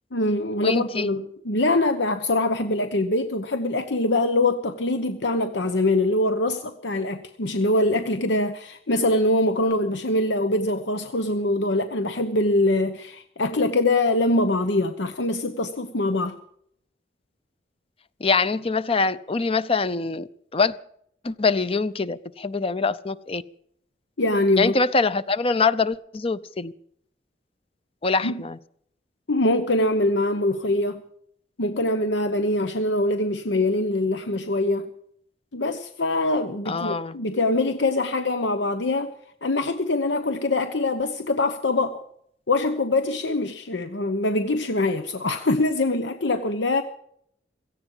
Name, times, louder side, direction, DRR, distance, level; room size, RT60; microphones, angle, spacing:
voice 1, 0.1-16.4 24.2-24.7 28.2-28.4 29.3-31.0 31.6-34.9 35.5-39.1 39.4-42.0 42.5-46.8, left 2 dB, 85° left, 9 dB, 1.0 m, -23 dB
voice 2, 0.6-1.1 18.2-20.7 21.2-23.4 24.6-26.7 28.0-28.6 36.7-37.2, left 4 dB, 35° left, 15 dB, 0.6 m, -24 dB
17.0 x 15.0 x 5.6 m, 0.67 s
head